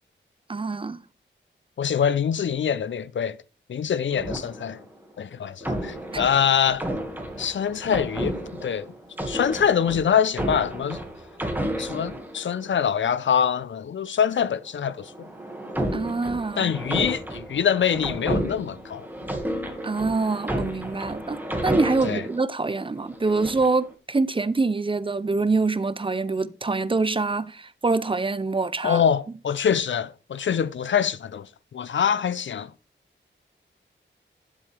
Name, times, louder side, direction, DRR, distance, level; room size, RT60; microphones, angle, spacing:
voice 1, 0.5-1.0 15.9-16.7 19.8-29.0, right 3 dB, 25° right, 0.5 m, -25 dB
voice 2, 1.8-3.4 3.7-4.8 5.2-6.9 7.4-8.9 9.2-11.0 11.8-15.3 16.6-19.1 22.0-22.3 28.8-32.7, left 8 dB, 75° left, 0.6 m, -24 dB
sound 1, 4.1-5.0 5.6-12.9 14.8-22.4 23.0-23.8, right 1 dB, 10° right, 1.9 m, -32 dB
10.5 x 7.6 x 3.4 m
wide cardioid pair, 120°, 20 cm